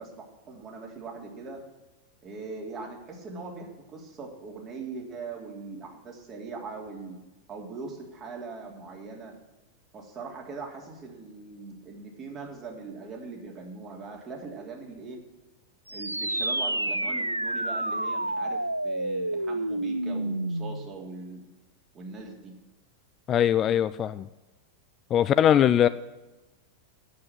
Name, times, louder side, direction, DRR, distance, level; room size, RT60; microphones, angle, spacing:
voice 1, 0.0-1.6 2.2-7.2 7.5-9.3 9.9-15.2 15.9-21.5 21.9-22.5, right 4 dB, 30° right, 0 dB, 3.3 m, -41 dB
sound 1, 15.9-20.9, right 1 dB, 85° right, 0.3 m, -29 dB
voice 2, 23.3-24.3 25.1-25.9, left 10 dB, 30° left, 14 dB, 0.4 m, -21 dB
9.6 x 8.5 x 9.8 m, 1.1 s
figure-of-eight pair, 90°, 0 cm